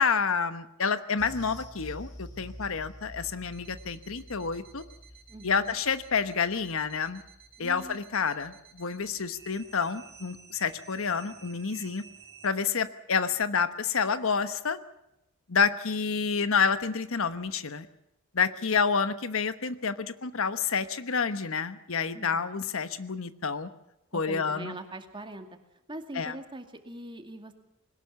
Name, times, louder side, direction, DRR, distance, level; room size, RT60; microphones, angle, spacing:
voice 1, 0.0-4.8 5.4-7.2 7.6-12.0 12.4-14.8 15.5-17.9 18.3-23.7 24.1-24.7 26.2-26.3, left 5 dB, 65° left, 12 dB, 1.1 m, -29 dB
sound 1, 1.2-9.8 10.1-10.3 10.7-10.8, equal, 40° left, 6.3 m, -49 dB
sound 2, 3.4-12.5, right 7 dB, 45° right, 2.8 m, -53 dB
voice 2, 5.3-5.7 7.6-8.1 22.1-22.4 24.1-25.6 25.9-27.5, right 1 dB, 25° right, 6 dB, 2.3 m, -42 dB
21.0 x 18.5 x 7.0 m, 0.87 s
head